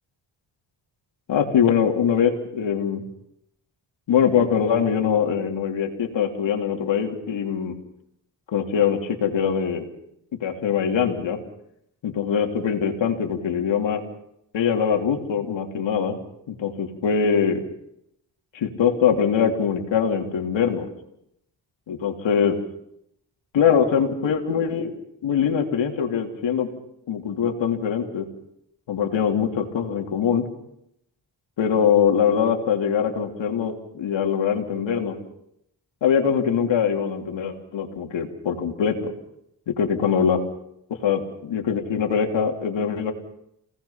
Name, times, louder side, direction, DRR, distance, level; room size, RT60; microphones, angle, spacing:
voice 1, 1.3-3.0 4.1-7.7 8.5-9.8 10.3-11.4 12.0-14.0 14.5-16.2 16.5-17.6 18.5-20.9 21.9-22.5 23.5-24.9 25.2-26.7 27.1-28.2 28.9-30.5 31.6-35.2 36.0-39.1 39.7-40.4 40.9-43.1, left 7 dB, 85° left, 3 dB, 3.3 m, -22 dB
29.0 x 18.5 x 5.8 m, 0.78 s
cardioid pair, 75°, 44 cm